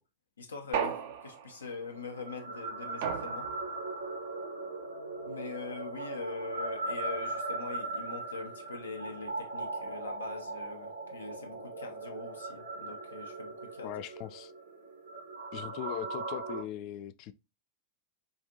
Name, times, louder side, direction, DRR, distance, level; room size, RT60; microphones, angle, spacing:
voice 1, 0.4-3.5 5.2-13.9, left 4 dB, 75° left, 0.8 m, -42 dB
sound 1, 0.7-1.7 3.0-3.8, right 8 dB, 55° right, 0.6 m, -35 dB
sound 2, 1.9-16.6, right 2 dB, 80° right, 1.2 m, -39 dB
voice 2, 13.8-14.5 15.5-17.3, left 11 dB, 40° left, 0.3 m, -40 dB
5.0 x 2.5 x 2.7 m
figure-of-eight pair, 90°, 0 cm